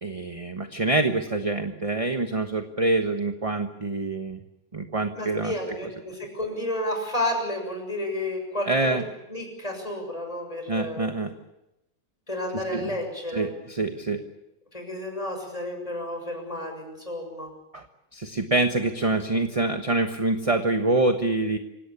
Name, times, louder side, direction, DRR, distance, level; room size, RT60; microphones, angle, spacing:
voice 1, 0.0-4.4 4.7-5.5 8.7-9.0 10.7-11.3 12.5-12.9 13.3-14.2 17.7-17.9 18.1-21.6, right 2 dB, 20° right, 6 dB, 1.1 m, -25 dB
voice 2, 5.1-9.0 9.3-11.1 12.3-13.5 14.7-17.5, left 1 dB, 20° left, 3 dB, 6.8 m, -31 dB
27.0 x 17.5 x 8.5 m, 0.92 s
omnidirectional pair, 1.8 m